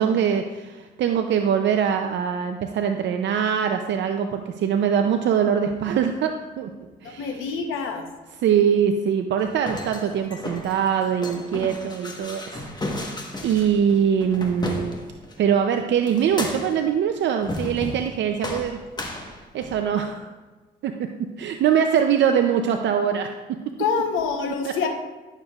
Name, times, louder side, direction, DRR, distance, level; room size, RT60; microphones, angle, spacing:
voice 1, 0.0-6.7 7.0-7.4 8.4-12.7 12.9-13.1 13.4-15.0 15.4-18.8 19.5-20.3 20.8-21.1 21.4-23.3 24.6-24.7, right 8 dB, 65° right, 5 dB, 0.5 m, -23 dB
voice 2, 7.0-8.1 23.8-24.9, left 5 dB, 85° left, 4 dB, 0.9 m, -26 dB
sound 1, 9.4-15.4 16.1-16.9 17.4-18.1 18.4-19.9, left 2 dB, 20° left, 1.2 m, -34 dB
11.0 x 6.6 x 2.4 m, 1.3 s
cardioid pair, 90°, 20 cm